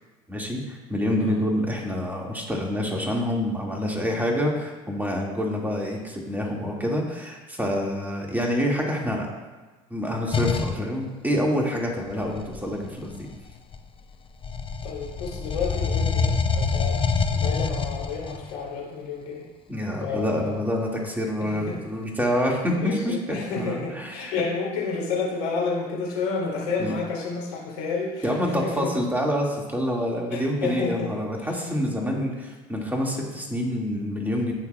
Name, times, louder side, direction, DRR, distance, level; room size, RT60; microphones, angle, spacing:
voice 1, 0.3-9.3 9.9-13.3 19.7-24.3 26.8-26.9 28.2-34.5, equal, 10° right, -1 dB, 1.9 m, -27 dB
sound 1, 10.3-10.8 12.1-14.0 14.4-18.6, left 5 dB, 30° left, 0.7 m, -26 dB
voice 2, 14.8-19.4 20.0-20.6 21.4-21.8 22.7-28.9 30.3-31.1 31.4-31.6 32.0-32.2, left 4 dB, 85° left, -4 dB, 2.9 m, -31 dB
16.0 x 5.8 x 2.3 m, 1.2 s
hypercardioid pair, 75°, 19 cm